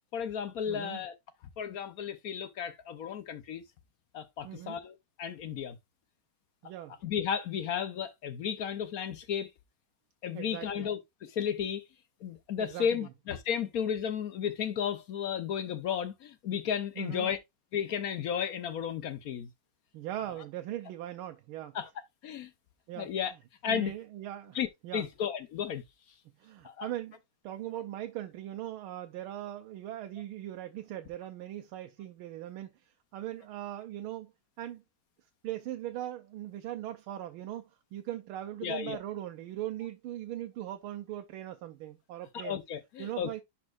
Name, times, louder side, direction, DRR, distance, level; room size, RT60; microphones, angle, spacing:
voice 1, 0.1-1.1 1.6-3.6 4.1-5.8 7.0-9.5 10.2-11.8 12.2-17.4 17.7-19.5 21.7-21.9 22.2-22.5 23.0-23.3 23.6-23.9 24.5-24.7 24.9-25.8 26.6-26.9 38.6-39.0 42.3-43.3, left 8 dB, 65° left, 0.9 m, -33 dB
voice 2, 0.7-1.0 4.4-4.8 6.6-7.0 10.3-10.9 12.6-13.1 17.0-17.3 19.9-21.8 22.9-23.1 23.7-24.6 24.8-25.1 26.4-27.2 27.4-34.3 34.6-34.8 35.4-42.6 43.0-43.4, right 13 dB, 80° right, 1.5 m, -40 dB
10.5 x 4.3 x 2.4 m
omnidirectional pair, 2.3 m